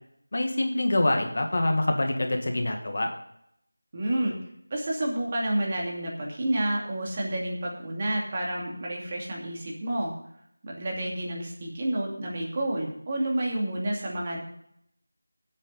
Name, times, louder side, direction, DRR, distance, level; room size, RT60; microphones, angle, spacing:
voice 1, 0.3-3.1, left 1 dB, 45° left, 4 dB, 1.8 m, -25 dB
voice 2, 3.9-4.4 4.7-10.1 10.6-14.4, right 1 dB, 25° right, -2 dB, 2.5 m, -29 dB
17.5 x 8.4 x 4.0 m, 0.74 s
figure-of-eight pair, 175°, 0 cm